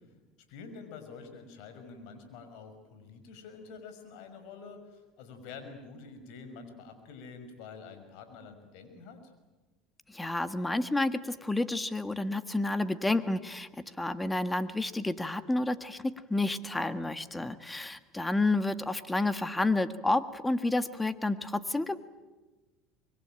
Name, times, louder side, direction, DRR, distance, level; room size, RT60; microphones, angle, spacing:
voice 1, 0.5-9.3, left 5 dB, 70° left, 7 dB, 5.9 m, -47 dB
voice 2, 10.1-13.7 14.0-22.0, left 2 dB, 10° left, 12 dB, 1.7 m, -30 dB
25.0 x 23.0 x 9.0 m, 1.2 s
supercardioid pair, 95°, 0 cm